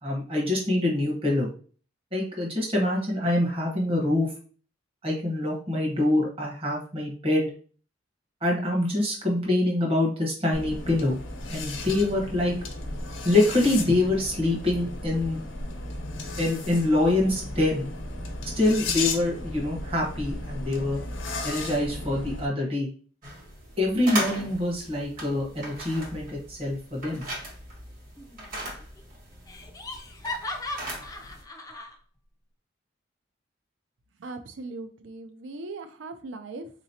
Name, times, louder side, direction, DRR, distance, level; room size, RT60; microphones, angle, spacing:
voice 1, 0.0-1.5 2.1-4.3 5.0-7.5 8.4-11.2 11.5-12.5 13.2-15.4 16.4-17.9 18.6-21.0 21.4-22.9 23.8-27.2, left 2 dB, 30° right, -3 dB, 1.1 m, -25 dB
sound 1, 10.5-22.5, left 2 dB, 80° left, 0.8 m, -35 dB
sound 2, 23.2-31.4, right 1 dB, 45° right, 1.5 m, -38 dB
Laughter, 28.2-28.7 29.0-29.1 29.5-31.9, left 2 dB, 20° left, 0.4 m, -37 dB
voice 2, 34.2-36.7, right 3 dB, 70° right, 9 dB, 0.5 m, -39 dB
3.8 x 3.0 x 2.7 m, 0.41 s
head